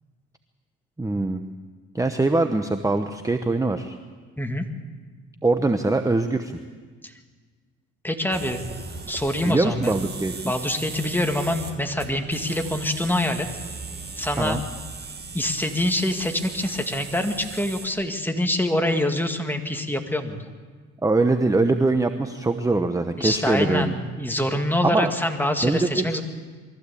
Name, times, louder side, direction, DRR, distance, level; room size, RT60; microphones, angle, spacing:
voice 1, 1.0-1.4 1.9-4.0 5.4-6.6 9.5-10.5 14.4-14.6 21.0-23.9 24.8-25.1 25.6-26.2, right 2 dB, 10° right, 8 dB, 0.9 m, -22 dB
voice 2, 8.0-8.6 9.1-9.9 10.4-13.5 14.2-14.6 15.3-20.4 23.2-26.2, left 1 dB, 5° left, 5 dB, 2.0 m, -25 dB
sound 1, 8.3-17.9, right 4 dB, 35° right, 2.3 m, -38 dB
22.5 x 14.5 x 8.4 m, 1.5 s
cardioid pair, 90°, 30 cm